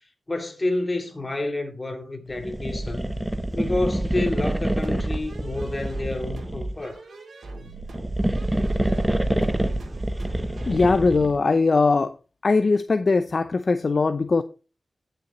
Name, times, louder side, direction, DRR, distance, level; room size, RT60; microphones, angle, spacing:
voice 1, 0.3-3.1 3.5-7.0, left 2 dB, 25° left, 2.7 m, -29 dB
sound 1, 2.4-6.8 7.7-11.4, right 1 dB, 15° right, 1.1 m, -26 dB
sound 2, 4.8-11.0, right 2 dB, 80° right, 3.1 m, -39 dB
voice 2, 10.7-12.1 12.4-14.4, left 3 dB, 50° left, 0.6 m, -20 dB
19.0 x 6.8 x 3.1 m
wide cardioid pair, 100°, 0 cm